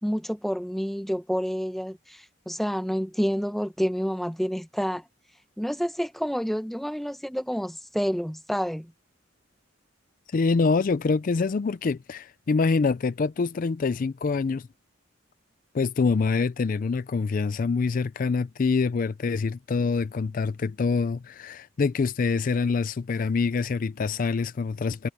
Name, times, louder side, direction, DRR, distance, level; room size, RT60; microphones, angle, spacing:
voice 1, 0.0-5.0 5.6-8.9, equal, ahead, 0.9 m, -29 dB
voice 2, 10.3-14.7 15.7-25.1, left 4 dB, 45° left, 0.4 m, -25 dB
head